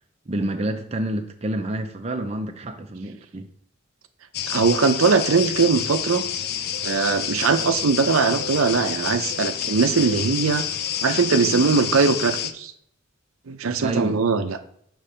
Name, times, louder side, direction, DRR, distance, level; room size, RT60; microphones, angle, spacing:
voice 1, 0.3-3.5 13.8-14.2, right 1 dB, 30° right, 5 dB, 0.5 m, -28 dB
sound 1, 4.3-12.5, left 9 dB, 45° left, 0.4 m, -28 dB
voice 2, 4.5-6.2 6.8-10.6 11.0-12.7 13.5-14.6, right 5 dB, 80° right, 9 dB, 0.6 m, -20 dB
6.8 x 3.1 x 5.5 m, 0.68 s
head